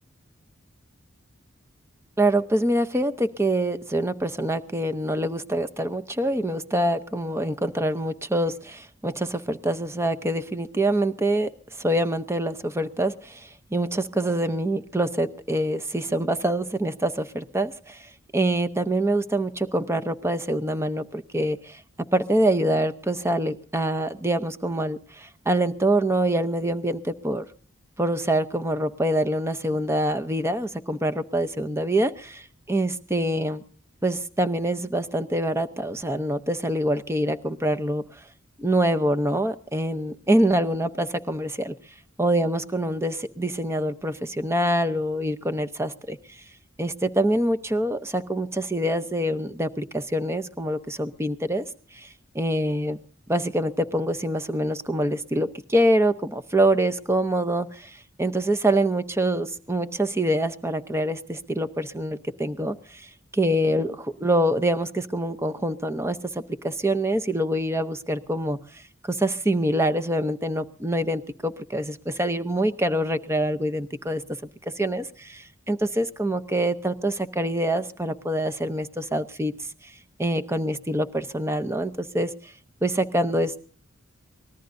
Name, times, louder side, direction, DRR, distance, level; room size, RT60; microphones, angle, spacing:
voice 1, 2.2-11.5 11.8-21.8 22.1-27.4 28.0-33.6 34.0-38.2 38.6-41.7 42.2-46.4 46.8-51.7 51.9-53.0 53.3-74.2 74.8-79.5 79.8-79.9 80.2-82.5 82.8-83.6, right 1 dB, 15° right, 11 dB, 0.7 m, -25 dB
24.5 x 19.0 x 2.6 m, 0.43 s
head